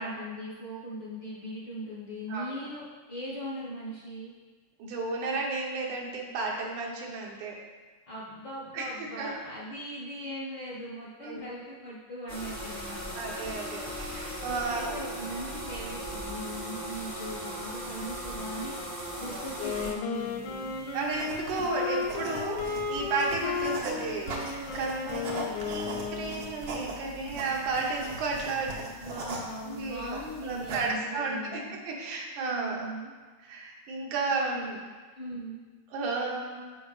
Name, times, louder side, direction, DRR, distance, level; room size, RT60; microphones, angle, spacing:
voice 1, 0.0-4.3 8.1-13.2 14.4-18.8 19.2-20.7 29.0-31.7 32.5-33.1 34.5-34.6 35.1-35.6, equal, 55° left, -7 dB, 1.2 m, -39 dB
voice 2, 4.8-7.6 8.7-9.3 11.2-11.4 13.2-15.0 20.9-28.7 29.6-32.9 33.4-34.8 35.9-36.6, right 3 dB, 90° right, -2 dB, 2.5 m, -33 dB
sound 1, 12.3-19.9, equal, 40° right, 0.6 m, -38 dB
Wind instrument woodwind instrument, 19.5-26.7, left 5 dB, 75° left, 1.9 m, -34 dB
sound 2, 20.1-30.9, right 2 dB, 60° right, 1.4 m, -40 dB
12.5 x 5.0 x 2.4 m, 1.4 s
omnidirectional pair, 3.3 m